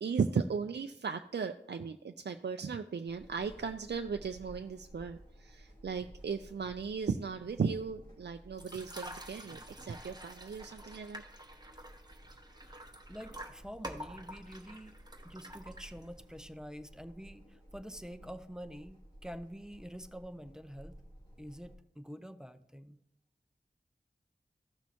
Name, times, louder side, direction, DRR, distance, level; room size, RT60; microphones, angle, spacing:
voice 1, 0.0-11.2, right 5 dB, 70° right, 6 dB, 0.4 m, -36 dB
sound 1, 3.1-21.8, equal, 30° left, 3.6 m, -55 dB
sound 2, 8.5-16.3, equal, 25° right, 1.0 m, -48 dB
voice 2, 13.1-14.9 15.2-19.0 19.2-21.0 21.4-23.0, equal, 5° right, 9 dB, 0.6 m, -47 dB
15.5 x 6.2 x 2.9 m, 0.82 s
wide cardioid pair, 55°, 18 cm